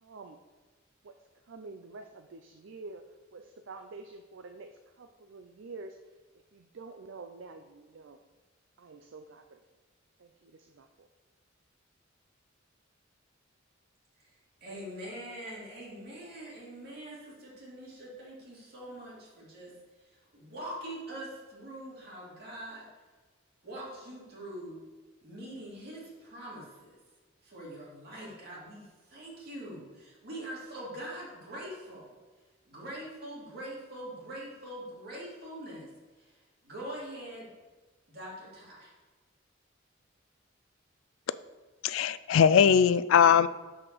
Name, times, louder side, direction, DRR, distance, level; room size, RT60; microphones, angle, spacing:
voice 1, 0.0-0.4 1.0-1.1 1.5-3.1 3.3-6.0 6.5-8.2 8.8-9.6 10.2-11.1, right 3 dB, 70° right, 6 dB, 0.5 m, -47 dB
voice 2, 14.6-19.7 20.0-22.9 23.6-24.8 25.2-27.0 27.4-32.1 32.7-35.9 36.2-37.5 38.1-38.9, right 1 dB, 55° right, -6 dB, 2.7 m, -43 dB
voice 3, 41.8-43.5, left 7 dB, 80° left, 16 dB, 0.3 m, -21 dB
6.0 x 5.1 x 6.2 m, 1.3 s
head